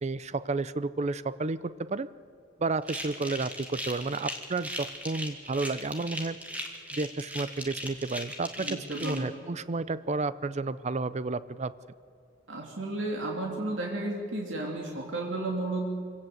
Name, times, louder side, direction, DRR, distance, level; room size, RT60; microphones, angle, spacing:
voice 1, 0.0-2.1 2.6-6.4 6.9-11.7, right 3 dB, 35° right, 16 dB, 0.5 m, -31 dB
sound 1, 2.8-9.2, equal, 10° right, 2.2 m, -38 dB
voice 2, 8.6-9.3 12.5-15.9, right 2 dB, 75° right, -1 dB, 3.0 m, -33 dB
26.0 x 17.0 x 7.9 m, 2.4 s
head